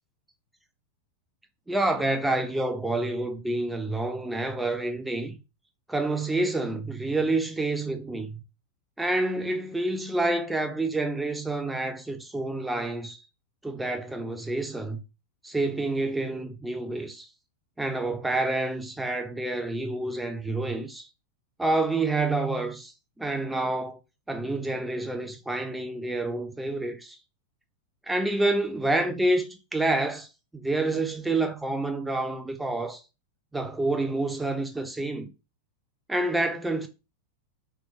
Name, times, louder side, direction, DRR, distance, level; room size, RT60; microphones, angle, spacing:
voice 1, 1.7-5.4 5.9-8.4 9.0-13.2 13.6-15.0 15.4-17.3 17.8-21.1 21.6-22.9 23.2-24.0 24.3-27.2 28.1-30.3 30.5-33.0 33.5-35.3 36.1-36.9, right 2 dB, 5° right, 0.6 m, -28 dB
3.4 x 3.0 x 3.5 m
figure-of-eight pair, 90°, 0 cm